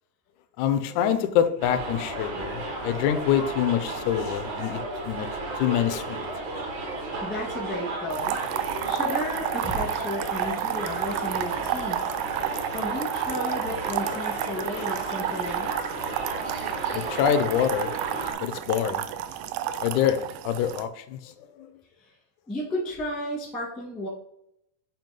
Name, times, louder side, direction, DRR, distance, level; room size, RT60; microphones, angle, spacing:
voice 1, 0.6-5.3 5.6-6.2 14.7-14.9 16.9-17.9 18.4-19.1 19.8-21.7, left 9 dB, 80° left, 1.7 m, -26 dB
Subway metro underground, 1.6-18.3, right 2 dB, 60° right, 1.2 m, -34 dB
voice 2, 7.2-8.4 8.8-12.0 12.7-15.9 22.0-22.1 22.5-24.1, left 1 dB, ahead, 0.7 m, -33 dB
sound 1, 8.1-20.8, right 10 dB, 80° right, 1.9 m, -31 dB
7.3 x 3.0 x 5.2 m
omnidirectional pair, 4.0 m